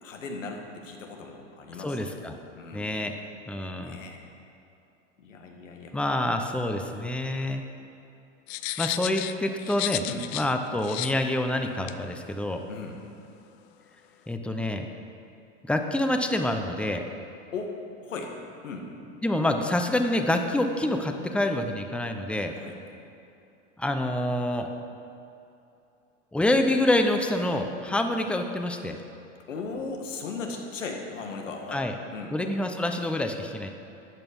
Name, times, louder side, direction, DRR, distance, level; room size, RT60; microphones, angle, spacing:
voice 1, 0.0-2.2 2.6-2.9 3.7-4.2 5.2-5.9 10.0-10.3 12.7-13.0 17.5-18.4 18.6-18.9 22.6-22.8 29.5-32.4, left 4 dB, 90° left, 2 dB, 1.9 m, -37 dB
voice 2, 1.8-2.4 2.7-3.1 3.5-4.0 5.9-7.6 8.8-10.0 10.3-12.6 14.3-14.8 15.6-17.0 19.2-22.5 23.8-24.7 26.3-29.0 31.7-31.9 32.3-33.7, left 1 dB, 5° left, 5 dB, 0.8 m, -27 dB
sound 1, 8.5-10.5 10.8-11.1 11.9-12.0, left 15 dB, 60° left, 0.6 m, -32 dB
13.0 x 9.0 x 5.4 m, 2.7 s
hypercardioid pair, 105°, 37 cm